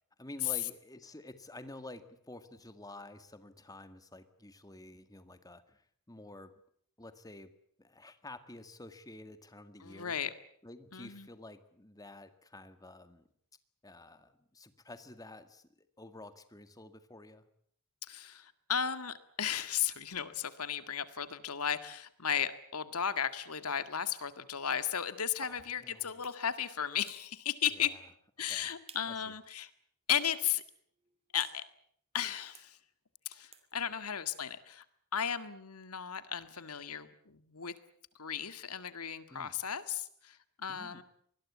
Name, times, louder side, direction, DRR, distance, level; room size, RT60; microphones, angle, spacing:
voice 1, 0.2-6.5 7.0-7.5 7.8-10.2 10.6-13.3 13.8-17.5 25.4-26.2 27.7-28.0 28.4-28.7 29.0-29.3 39.3-39.6 40.7-41.0, left 2 dB, 15° left, 10 dB, 1.9 m, -50 dB
voice 2, 9.8-10.3 10.9-11.3 18.0-27.9 28.4-29.7 30.1-30.6 31.3-31.6 32.1-32.8 33.3-34.8 35.1-37.7 38.2-41.0, left 8 dB, 90° left, 11 dB, 1.9 m, -35 dB
sound 1, 25.4-25.6 26.2-26.4 27.1-27.2 28.5-29.1 29.5-29.6 30.1-30.4 30.7-31.6 32.5-32.7 33.5-33.7, right 7 dB, 30° right, 2.7 m, -53 dB
25.0 x 20.5 x 8.5 m, 0.65 s
head